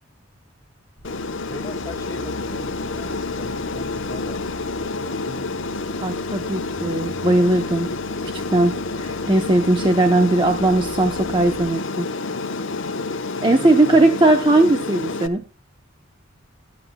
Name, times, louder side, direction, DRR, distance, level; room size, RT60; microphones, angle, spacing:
Aircraft, 1.0-15.3, left 3 dB, 70° left, 1.0 m, -29 dB
sound 1, 1.0-11.7, right 1 dB, 60° right, 1.6 m, -42 dB
voice 1, 1.5-5.6 13.4-14.2, left 1 dB, 15° left, 1 dB, 2.0 m, -39 dB
voice 2, 6.0-7.9 8.5-12.1 13.4-15.4, right 2 dB, 25° right, 4 dB, 0.8 m, -18 dB
15.0 x 10.5 x 2.3 m, 0.31 s
head